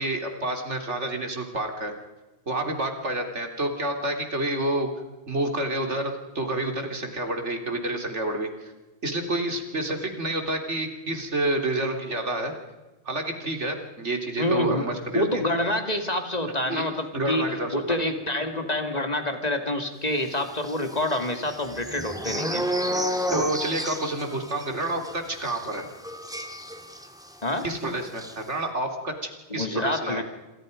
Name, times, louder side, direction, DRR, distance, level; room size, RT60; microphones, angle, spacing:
voice 1, 0.0-1.9 2.5-4.9 5.3-8.5 9.0-12.5 13.1-15.4 16.7-18.0 22.9-25.9 27.6-30.2, right 1 dB, 85° right, 4 dB, 3.6 m, -29 dB
voice 2, 14.4-14.9 15.1-22.7 27.4-27.7 29.5-30.2, left 1 dB, 35° left, 6 dB, 2.6 m, -27 dB
sound 1, 20.6-27.3 27.6-27.8 28.1-28.3, equal, 5° right, 2.1 m, -31 dB
28.0 x 26.5 x 5.3 m, 1.1 s
omnidirectional pair, 1.2 m